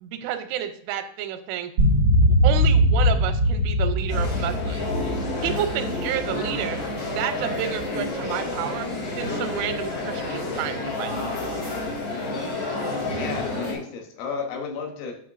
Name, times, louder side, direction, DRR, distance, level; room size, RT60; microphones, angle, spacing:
voice 1, 0.0-1.7 2.4-4.8 5.4-6.8 7.1-8.9 9.1-11.1, right 10 dB, 85° right, 8 dB, 3.1 m, -30 dB
sound 1, 1.8-7.1, equal, 60° right, 1.5 m, -21 dB
sound 2, 4.1-13.7, left 2 dB, 55° left, 1.7 m, -30 dB
sound 3, 4.8-9.3 10.1-11.6, left 2 dB, 70° left, 3.0 m, -39 dB
voice 2, 13.1-15.1, left 5 dB, 85° left, 3 dB, 3.5 m, -33 dB
8.3 x 5.9 x 2.5 m, 0.64 s
omnidirectional pair, 5.4 m